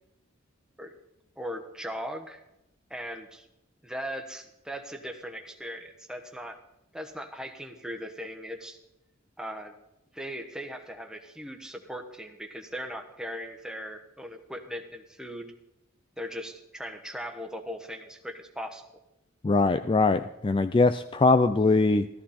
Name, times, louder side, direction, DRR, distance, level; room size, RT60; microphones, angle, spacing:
voice 1, 1.4-2.4 2.9-3.5 3.8-6.6 6.9-8.8 9.4-9.7 10.1-15.5 16.2-18.8, equal, 5° right, 5 dB, 1.2 m, -39 dB
voice 2, 19.4-22.1, left 3 dB, 25° left, 11 dB, 0.4 m, -22 dB
14.5 x 13.5 x 4.3 m, 0.89 s
head